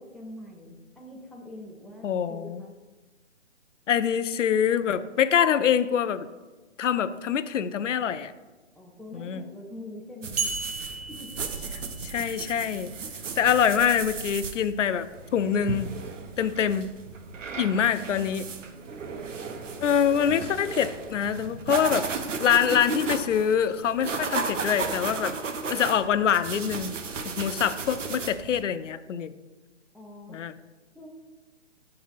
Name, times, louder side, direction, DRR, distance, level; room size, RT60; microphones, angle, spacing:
voice 1, 0.0-2.7 8.8-10.5 11.1-11.4 17.5-18.3 18.9-19.0 29.9-30.4 30.9-31.1, left 1 dB, ahead, -1 dB, 0.3 m, -44 dB
voice 2, 2.0-2.6 3.9-6.3 6.8-8.3 9.1-9.4 12.0-12.9 13.4-15.9 16.4-16.9 17.6-18.5 19.8-22.1 22.4-25.3 25.7-26.9 27.2-29.3 30.3-30.5, left 8 dB, 75° left, 13 dB, 0.5 m, -25 dB
sound 1, 10.2-28.6, right 4 dB, 85° right, 0.8 m, -35 dB
sound 2, 10.4-12.4, right 5 dB, 35° right, 0.8 m, -34 dB
4.9 x 3.9 x 5.5 m, 1.2 s
hypercardioid pair, 175°, 37 cm